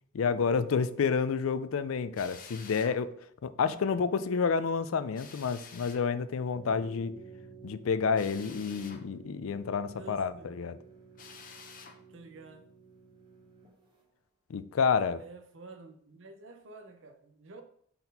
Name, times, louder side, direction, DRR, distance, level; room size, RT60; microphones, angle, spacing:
voice 1, 0.1-3.1 3.4-7.2 7.6-10.8 14.5-15.2, left 5 dB, 85° left, 0.4 m, -29 dB
Drill, 2.2-3.0 5.1-6.1 8.2-9.0 11.2-12.0, left 5 dB, 40° left, 0.7 m, -49 dB
voice 2, 3.6-4.0 10.0-10.5 12.1-12.7 15.2-17.6, right 3 dB, 70° right, 0.7 m, -49 dB
sound 1, 6.5-14.0, right 5 dB, 20° right, 1.0 m, -52 dB
4.3 x 4.1 x 5.3 m
head